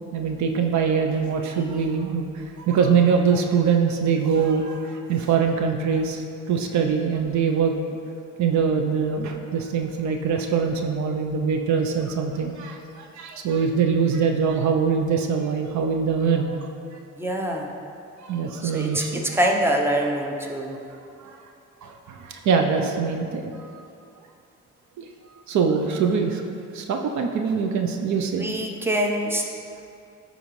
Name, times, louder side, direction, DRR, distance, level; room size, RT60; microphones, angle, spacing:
voice 1, 0.1-2.3 2.6-6.2 6.5-7.7 8.4-16.6 18.3-19.2 21.2-21.3 21.8-23.7 25.0-25.1 25.5-26.4 26.7-28.5, right 6 dB, 70° right, 4 dB, 0.6 m, -23 dB
voice 2, 17.2-17.7 18.6-19.0 19.3-20.8 28.3-29.4, right 1 dB, 10° right, 0 dB, 0.7 m, -24 dB
10.5 x 3.9 x 3.1 m, 2.5 s
cardioid pair, 90°, 30 cm